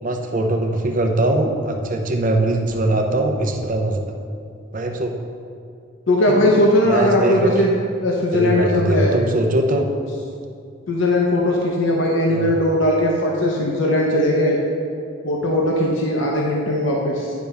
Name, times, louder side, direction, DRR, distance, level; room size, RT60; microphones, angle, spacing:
voice 1, 0.0-4.0 4.7-5.1 6.3-6.5 6.9-7.5 8.3-9.9 12.3-12.6, right 1 dB, 40° right, 3 dB, 0.6 m, -21 dB
voice 2, 6.1-7.7 8.0-9.1 10.9-14.6 15.2-17.3, left 1 dB, 70° left, -2 dB, 0.8 m, -19 dB
9.2 x 3.5 x 5.4 m, 2.4 s
head